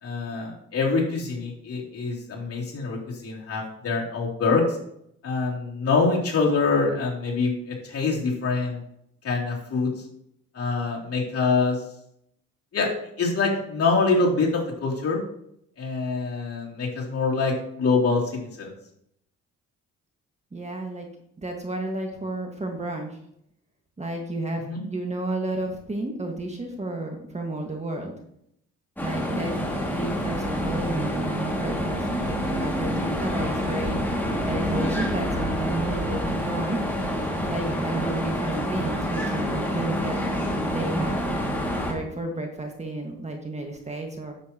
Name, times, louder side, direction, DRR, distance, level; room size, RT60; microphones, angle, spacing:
voice 1, 0.0-4.8 5.2-8.8 9.2-9.9 10.5-11.8 12.7-12.9 13.2-15.2 15.8-18.7 24.7-24.8, left 4 dB, 50° left, -3 dB, 3.2 m, -25 dB
voice 2, 20.5-21.1 21.4-23.2 24.0-28.1 29.0-29.6 29.9-34.0 34.4-36.9 37.5-40.2 40.7-41.4 41.7-44.3, right 2 dB, 20° right, 2 dB, 1.7 m, -32 dB
sound 1, 29.0-41.9, equal, 5° left, 2.3 m, -27 dB
9.8 x 7.5 x 3.0 m, 0.72 s
cardioid pair, 90°, 30 cm